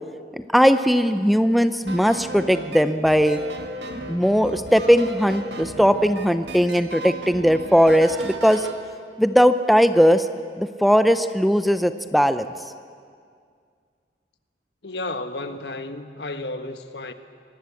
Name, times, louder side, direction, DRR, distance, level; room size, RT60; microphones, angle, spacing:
voice 1, 0.5-3.4 4.1-8.7 9.2-10.3 10.6-12.5, equal, ahead, 10 dB, 0.6 m, -18 dB
sound 1, 1.9-8.8, right 2 dB, 80° right, 2.1 m, -36 dB
voice 2, 14.8-17.1, left 2 dB, 75° left, 9 dB, 1.4 m, -32 dB
25.5 x 19.0 x 8.3 m, 2.2 s
head